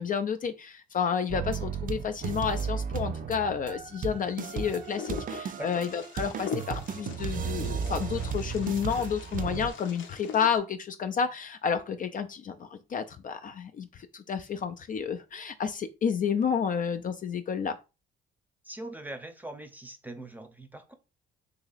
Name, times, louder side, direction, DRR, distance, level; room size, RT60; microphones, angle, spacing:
voice 1, 0.0-17.8, left 7 dB, 45° left, 0.4 m, -30 dB
sound 1, 1.3-9.7, right 6 dB, 45° right, 0.4 m, -34 dB
Wind, 4.5-10.6, left 8 dB, 75° left, 0.7 m, -42 dB
voice 2, 18.6-20.9, right 1 dB, 10° right, 0.7 m, -42 dB
2.9 x 2.8 x 4.0 m
cardioid pair, 90°, 20 cm